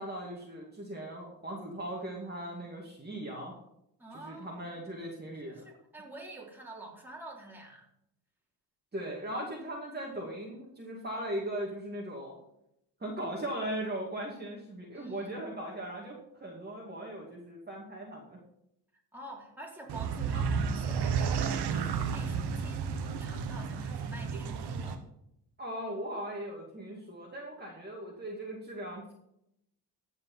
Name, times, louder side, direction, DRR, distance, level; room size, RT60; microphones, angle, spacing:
voice 1, 0.0-3.5 4.1-5.6 8.9-12.4 13.0-18.4 25.6-29.1, right 1 dB, 25° right, -2 dB, 2.5 m, -39 dB
voice 2, 4.0-4.9 5.3-7.9 14.9-15.4 19.1-25.0, right 1 dB, 5° right, -2 dB, 3.4 m, -47 dB
sound 1, 19.9-25.0, right 6 dB, 75° right, 1.4 m, -32 dB
15.5 x 5.4 x 5.7 m, 0.78 s
cardioid pair, 90°, 40 cm